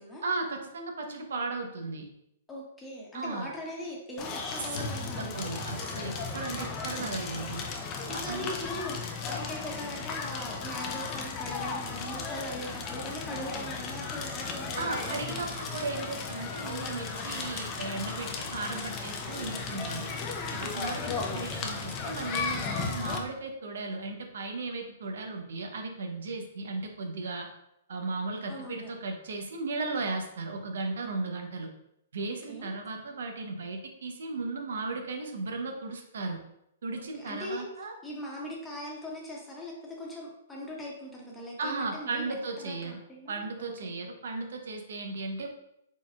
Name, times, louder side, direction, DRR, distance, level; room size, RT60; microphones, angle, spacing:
voice 1, 0.2-2.1 3.1-3.5 4.7-4.8 5.1-7.6 8.1-8.5 14.8-20.2 20.5-27.5 27.9-31.7 32.1-36.4 36.8-37.9 41.6-43.0 43.3-45.5, right 3 dB, 75° right, 4 dB, 0.8 m, -36 dB
voice 2, 2.5-5.5 8.2-15.4 20.9-21.2 28.5-28.9 32.5-32.7 37.1-37.6 38.0-43.9, equal, 10° left, -3 dB, 1.1 m, -40 dB
Crackle, 4.2-23.2, left 4 dB, 30° left, 0.6 m, -35 dB
4.2 x 4.0 x 2.4 m, 0.81 s
hypercardioid pair, 135°, 0 cm